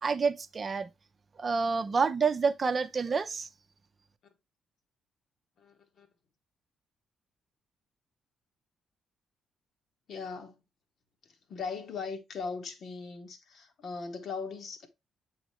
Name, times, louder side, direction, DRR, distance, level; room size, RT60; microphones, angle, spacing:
voice 1, 0.0-0.9 1.4-3.5, right 5 dB, 40° right, 0.6 m, -28 dB
voice 2, 5.6-6.1 10.1-10.6 11.2-14.9, left 5 dB, 55° left, 1.3 m, -39 dB
8.1 x 3.9 x 3.1 m
figure-of-eight pair, 40°, 0 cm